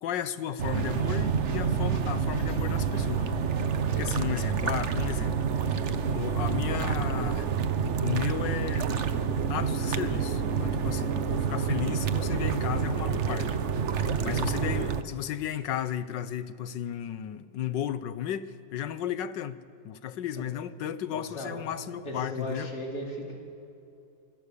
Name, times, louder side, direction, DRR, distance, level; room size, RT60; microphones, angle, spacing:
voice 1, 0.0-3.5 3.7-5.4 6.1-7.5 8.0-8.9 9.5-13.6 13.9-19.6 19.8-22.7, left 10 dB, 85° left, 1.6 m, -34 dB
sound 1, 0.6-15.0, right 6 dB, 50° right, 1.1 m, -28 dB
voice 2, 14.3-14.6 21.1-21.6 22.0-23.3, equal, 60° left, 4.9 m, -37 dB
27.0 x 24.0 x 6.9 m
omnidirectional pair, 1.9 m